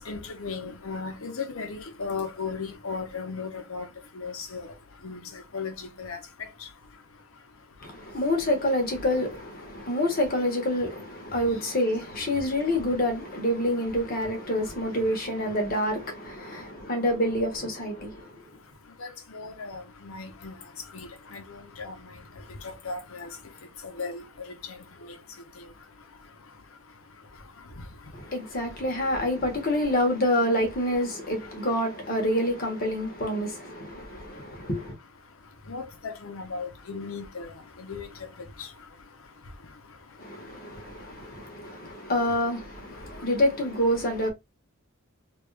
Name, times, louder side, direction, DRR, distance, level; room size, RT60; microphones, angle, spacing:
voice 1, 0.0-3.9 4.2-4.6 5.0-5.2 5.5-6.2 19.0-20.5 20.9-21.9 22.6-23.3 24.0-24.2 35.7-37.5 37.8-38.1, left 4 dB, 85° left, 0.8 m, -36 dB
voice 2, 7.8-18.4 28.1-34.9 40.2-44.3, left 1 dB, 45° left, 1.3 m, -27 dB
3.3 x 2.5 x 3.2 m
head